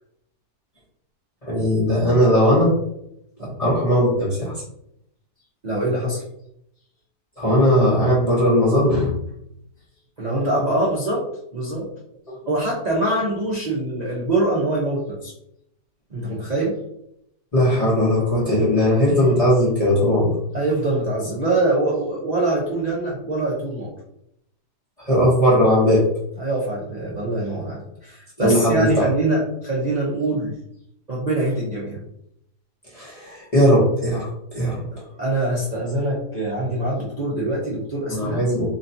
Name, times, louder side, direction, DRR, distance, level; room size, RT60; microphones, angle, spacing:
voice 1, 1.4-2.7 3.6-4.5 7.4-9.2 12.3-12.4 17.5-20.4 25.0-26.1 28.4-29.1 32.9-34.8 38.1-38.7, equal, 25° left, -7 dB, 0.9 m, -18 dB
voice 2, 5.6-6.2 10.2-11.3 11.5-11.9 12.4-15.3 16.1-16.8 20.5-23.9 26.4-30.6 31.1-32.0 34.9-38.5, right 2 dB, 40° right, -6 dB, 0.6 m, -24 dB
3.9 x 3.1 x 2.7 m, 0.77 s
omnidirectional pair, 1.8 m